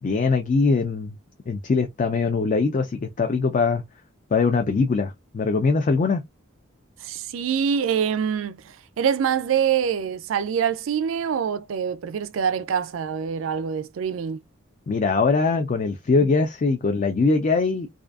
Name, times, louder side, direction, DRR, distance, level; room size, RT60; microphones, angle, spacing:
voice 1, 0.0-1.1 1.5-3.8 4.3-6.2 14.9-17.9, left 4 dB, 40° left, 0.4 m, -22 dB
voice 2, 7.0-14.4, right 7 dB, 75° right, 0.4 m, -25 dB
2.5 x 2.4 x 2.3 m
head